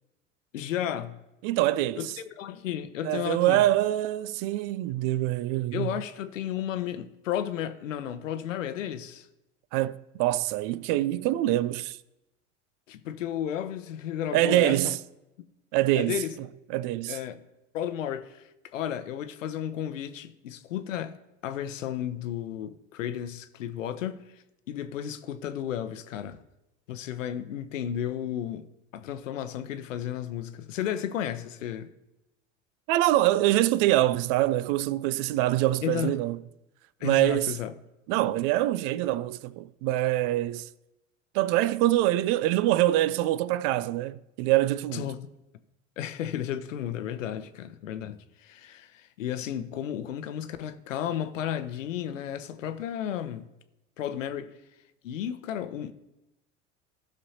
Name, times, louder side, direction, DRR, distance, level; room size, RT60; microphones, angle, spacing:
voice 1, 0.5-1.2 2.0-2.1 2.3-3.6 5.7-9.3 12.9-15.0 15.9-16.3 17.1-17.4 17.7-21.2 21.4-24.2 24.7-26.4 26.9-31.9 35.8-36.1 37.0-37.7 44.9-45.3 46.0-53.4 54.0-54.5 55.0-55.9, left 10 dB, 80° left, 0.8 m, -33 dB
voice 2, 1.4-2.1 3.0-5.9 9.7-12.0 14.3-15.0 15.7-16.2 16.7-17.2 32.9-36.4 37.0-37.6 38.1-40.7 41.3-45.1, right 15 dB, 55° right, 0.5 m, -25 dB
16.0 x 6.3 x 2.8 m
hypercardioid pair, 75°, 37 cm